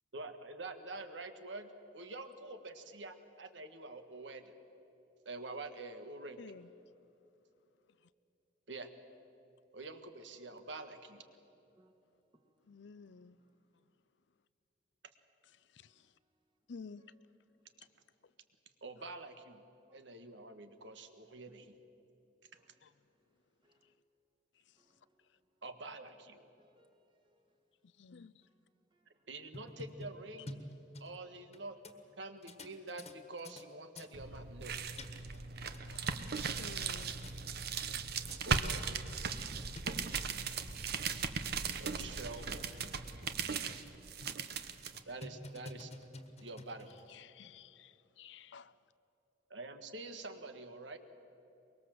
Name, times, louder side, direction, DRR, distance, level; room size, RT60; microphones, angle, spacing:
voice 1, 0.1-4.4 5.2-6.5 8.7-8.9 9.7-11.2 18.8-19.6 19.9-21.8 25.6-26.4 29.3-30.6 31.0-31.8 32.2-34.8 38.4-39.0 41.8-42.7 45.0-45.9 46.4-47.0 49.5-51.0, right 2 dB, 75° right, 1.7 m, -47 dB
voice 2, 6.4-6.7 12.7-13.4 16.7-17.0 22.8-22.9 28.0-28.3 34.3-34.4 35.9-36.2 36.5-37.2 40.5-40.7 41.1-41.2 47.1-48.7, left 5 dB, 70° left, 0.5 m, -52 dB
voice 3, 23.6-23.9 24.8-25.2 26.6-27.3 28.9-29.1 42.8-42.9, right 1 dB, 25° right, 1.9 m, -70 dB
sound 1, 29.5-31.6 31.8-31.9 32.4-33.7 34.0-34.1 34.7-35.4 35.7-36.7 37.0-37.4 38.0-38.1 38.3-38.4 38.8-38.9 39.1-39.2 39.8-39.9 40.4-40.8 41.3-41.4 41.7-41.8 42.3-42.4 42.7-42.8 43.2-43.9 44.2-44.5 44.9-47.1, left 1 dB, 35° left, 1.6 m, -50 dB
sound 2, 34.1-45.0, right 5 dB, 60° right, 1.1 m, -38 dB
23.5 x 22.5 x 7.7 m
head